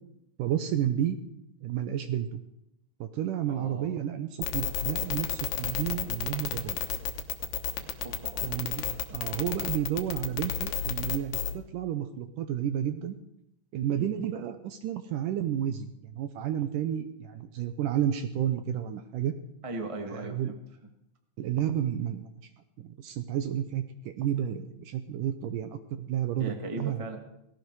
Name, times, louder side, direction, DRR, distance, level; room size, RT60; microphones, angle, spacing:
voice 1, 0.4-1.2 1.6-2.4 3.0-6.8 8.4-8.8 9.1-13.2 13.7-19.3 20.2-20.5 21.4-22.3 22.8-27.0, right 10 dB, 75° right, 9 dB, 2.0 m, -31 dB
voice 2, 3.5-3.9 8.0-8.6 13.9-14.4 19.6-20.6 26.4-27.2, right 2 dB, 40° right, 4 dB, 0.4 m, -38 dB
sound 1, 4.4-11.5, left 9 dB, 70° left, 2.7 m, -31 dB
17.5 x 17.0 x 4.8 m, 0.79 s
omnidirectional pair, 4.5 m